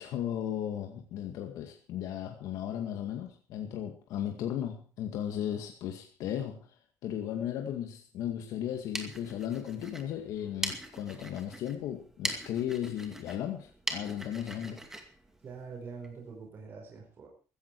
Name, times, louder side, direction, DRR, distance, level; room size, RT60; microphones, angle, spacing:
voice 1, 0.0-6.7 7.0-14.8, left 10 dB, 70° left, 4 dB, 2.1 m, -36 dB
sound 1, 8.6-16.1, right 1 dB, 5° right, 2.3 m, -41 dB
voice 2, 15.4-17.3, right 5 dB, 35° right, 0 dB, 4.9 m, -44 dB
15.5 x 15.0 x 4.8 m, 0.38 s
cardioid pair, 155°, 6 cm